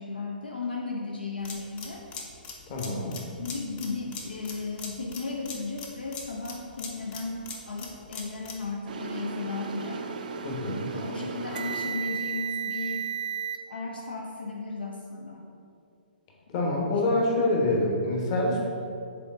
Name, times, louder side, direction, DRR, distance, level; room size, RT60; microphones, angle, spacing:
voice 1, 0.0-2.0 3.4-10.0 10.9-13.0 13.7-15.5, left 3 dB, 70° left, 0 dB, 0.6 m, -35 dB
sound 1, 1.4-8.7, left 4 dB, 20° left, 0.7 m, -41 dB
voice 2, 2.7-3.1 10.4-10.9 16.5-18.7, left 2 dB, 35° left, -2 dB, 1.2 m, -26 dB
sound 2, 8.9-13.6, right 6 dB, 55° right, 0.5 m, -34 dB
6.7 x 4.0 x 3.6 m, 2.5 s
figure-of-eight pair, 120°, 5 cm